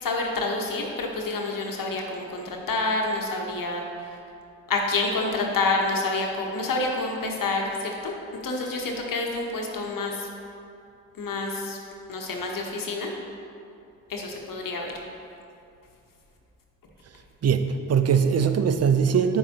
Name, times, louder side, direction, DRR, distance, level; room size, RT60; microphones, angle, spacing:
voice 1, 0.0-4.2 4.7-8.1 8.4-10.3 11.2-11.8 12.1-13.1 14.1-14.9, left 3 dB, 65° left, 1 dB, 1.1 m, -28 dB
voice 2, 17.4-19.4, right 7 dB, 45° right, 9 dB, 0.5 m, -21 dB
7.5 x 6.2 x 2.9 m, 2.5 s
supercardioid pair, 45°, 36 cm